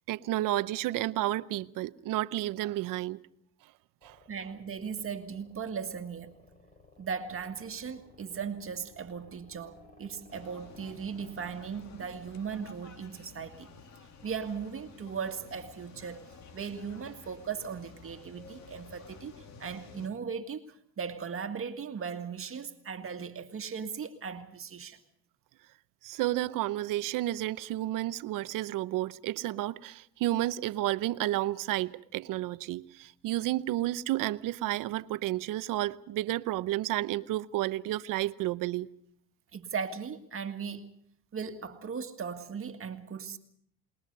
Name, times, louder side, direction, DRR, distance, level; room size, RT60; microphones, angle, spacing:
voice 1, 0.1-3.2 4.0-4.2 26.0-38.9, right 15 dB, 75° right, 0.8 m, -31 dB
sound 1, 4.0-12.6, left 2 dB, 25° left, 4.5 m, -57 dB
voice 2, 4.3-6.4 7.0-13.7 14.2-16.3 16.5-25.0 39.5-40.9 41.3-43.4, right 6 dB, 40° right, 1.9 m, -38 dB
sound 2, 10.3-20.1, left 5 dB, 55° left, 2.3 m, -52 dB
28.5 x 20.5 x 5.5 m
cardioid pair, 105°, 33 cm